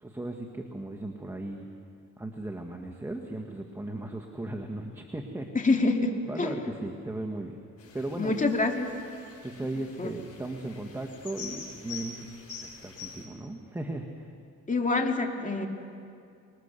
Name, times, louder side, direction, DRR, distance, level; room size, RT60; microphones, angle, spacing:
voice 1, 0.0-1.7 2.2-5.6 6.3-7.7 7.9-8.3 9.4-14.3, right 2 dB, 10° right, 2 dB, 1.7 m, -37 dB
voice 2, 5.5-6.1 6.4-6.7 8.2-8.9 10.0-10.1 14.7-15.7, left 3 dB, 25° left, 3 dB, 2.7 m, -26 dB
sound 1, 7.8-13.2, left 5 dB, 50° left, 6.0 m, -45 dB
26.5 x 20.5 x 6.9 m, 2.4 s
cardioid pair, 90°, 30 cm